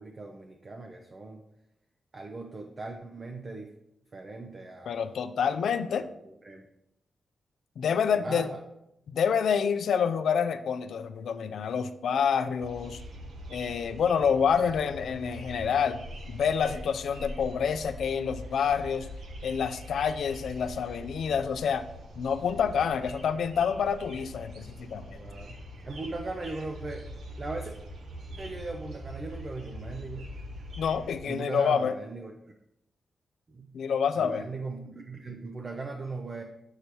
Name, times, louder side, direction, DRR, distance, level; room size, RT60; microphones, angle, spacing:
voice 1, 0.0-1.4 2.1-3.7 4.1-5.1 5.9-6.7 8.2-8.6 25.1-25.6 25.8-27.1 27.4-27.7 28.4-30.3 31.2-32.3 33.5-33.7 34.1-36.4, right 3 dB, 35° right, 3 dB, 0.6 m, -39 dB
voice 2, 4.9-6.1 7.8-8.5 9.1-13.0 13.5-19.1 19.4-21.8 22.2-25.2 30.8-31.9 33.7-34.5, left 7 dB, 80° left, 10 dB, 0.5 m, -28 dB
sound 1, 12.6-31.2, equal, 75° right, 1.0 m, -43 dB
8.2 x 6.6 x 3.0 m, 0.84 s
wide cardioid pair, 140°, 0 cm